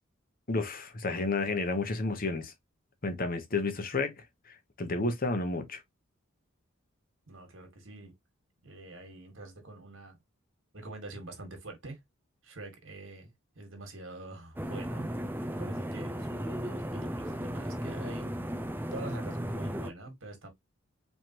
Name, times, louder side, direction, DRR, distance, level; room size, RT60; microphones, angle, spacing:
voice 1, 0.5-2.5 3.0-4.1 4.5-5.8, left 3 dB, 45° left, 0.9 m, -31 dB
voice 2, 7.3-8.1 8.6-10.2 10.7-12.0 12.4-15.1 15.5-18.3 18.9-20.5, right 2 dB, 70° right, 1.8 m, -45 dB
sound 1, 14.6-19.9, equal, 10° right, 0.4 m, -35 dB
4.5 x 3.3 x 2.9 m
head